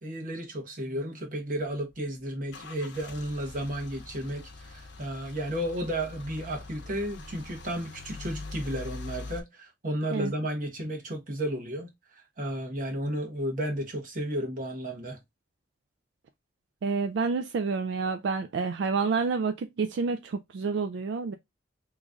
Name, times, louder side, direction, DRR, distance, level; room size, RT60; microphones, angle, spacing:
voice 1, 0.0-11.9 12.4-15.2, right 1 dB, 50° right, 1.2 m, -33 dB
Car / Engine starting / Idling, 1.6-9.4, left 3 dB, 90° left, 0.7 m, -43 dB
voice 2, 16.8-21.3, right 4 dB, 80° right, 0.3 m, -29 dB
3.1 x 2.5 x 3.5 m
head